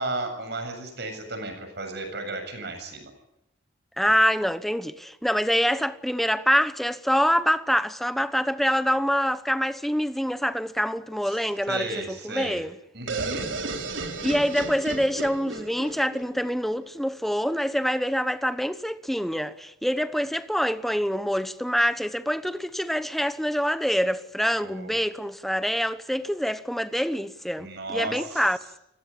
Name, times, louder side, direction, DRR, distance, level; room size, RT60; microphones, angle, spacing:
voice 1, 0.0-3.1 11.3-11.4 11.7-12.6 12.9-13.5 24.6-25.0 27.6-28.4, right 2 dB, 60° right, 7.5 m, -34 dB
voice 2, 4.0-12.7 14.2-28.8, equal, ahead, 0.9 m, -25 dB
sound 1, 13.1-16.8, right 3 dB, 80° right, 4.0 m, -33 dB
29.0 x 18.0 x 8.7 m
head